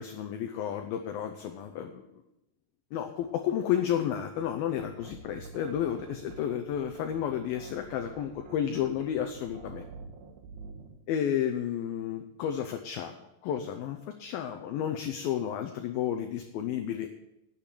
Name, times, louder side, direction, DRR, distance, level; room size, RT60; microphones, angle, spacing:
voice 1, 0.0-2.0 2.9-9.9 11.1-17.1, left 9 dB, 75° left, 6 dB, 2.3 m, -32 dB
sound 1, 4.4-11.0, right 4 dB, 70° right, 2.9 m, -48 dB
10.0 x 6.9 x 9.0 m, 0.87 s
omnidirectional pair, 4.9 m